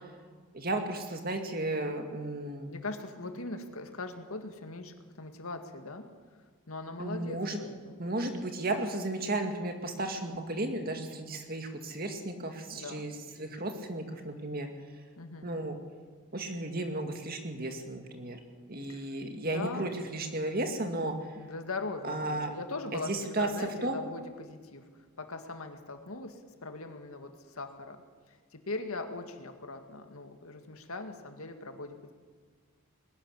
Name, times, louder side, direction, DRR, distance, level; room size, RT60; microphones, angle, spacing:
voice 1, 0.5-2.7 7.0-7.6 8.0-14.7 15.4-15.8 16.3-18.4 18.7-21.2 22.0-22.5 22.9-23.5 23.8-24.0, right 2 dB, 40° right, 5 dB, 2.2 m, -34 dB
voice 2, 2.7-6.1 6.7-8.1 10.3-10.6 12.7-13.1 15.2-15.5 18.9-19.1 19.5-19.9 21.4-24.9 25.2-28.0 28.5-32.1, left 3 dB, 75° left, 6 dB, 2.1 m, -40 dB
21.0 x 13.0 x 10.0 m, 1.5 s
head